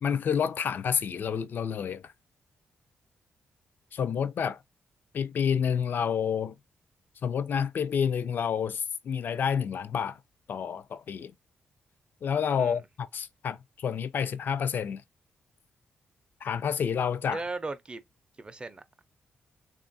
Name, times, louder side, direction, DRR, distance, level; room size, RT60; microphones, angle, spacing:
voice 1, 0.0-2.1 3.9-4.6 5.1-6.6 7.2-10.2 10.5-11.3 12.2-15.0 16.4-17.4, left 7 dB, 55° left, 0.3 m, -29 dB
voice 2, 17.3-18.0 18.4-19.0, right 3 dB, 25° right, 0.5 m, -37 dB
3.3 x 2.3 x 2.5 m
cardioid pair, 90°, 4 cm